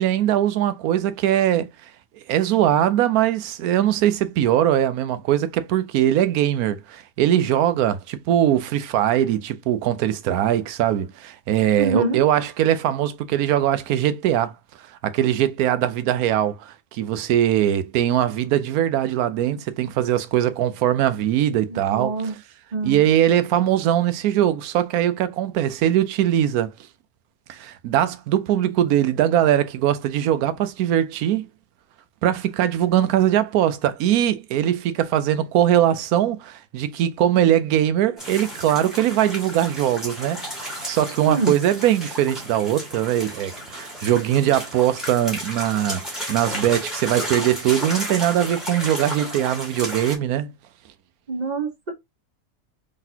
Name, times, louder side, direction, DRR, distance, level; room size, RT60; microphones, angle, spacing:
voice 1, 0.0-1.7 2.3-14.5 15.0-22.3 22.8-26.7 27.5-31.5 32.2-50.5, right 11 dB, 85° right, 1.1 m, -21 dB
voice 2, 11.8-12.2 21.7-22.3 22.7-23.0 41.2-41.5 51.3-51.9, right 3 dB, 35° right, 1.0 m, -25 dB
sound 1, 38.2-50.2, equal, ahead, 1.8 m, -33 dB
3.9 x 3.6 x 2.8 m
omnidirectional pair, 1.5 m